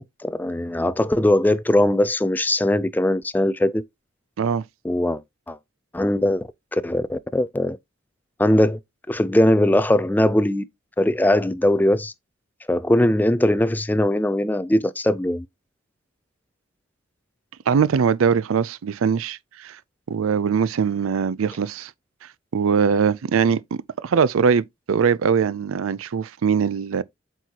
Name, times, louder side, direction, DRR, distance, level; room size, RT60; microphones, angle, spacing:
voice 1, 0.0-3.8 4.8-5.2 5.5-5.6 5.9-7.8 8.4-8.8 9.1-10.6 11.0-12.1 12.7-15.5, left 1 dB, 10° left, 0.3 m, -20 dB
voice 2, 17.7-19.8 20.1-21.9 22.5-27.0, right 6 dB, 90° right, 0.4 m, -21 dB
7.9 x 4.6 x 2.8 m
head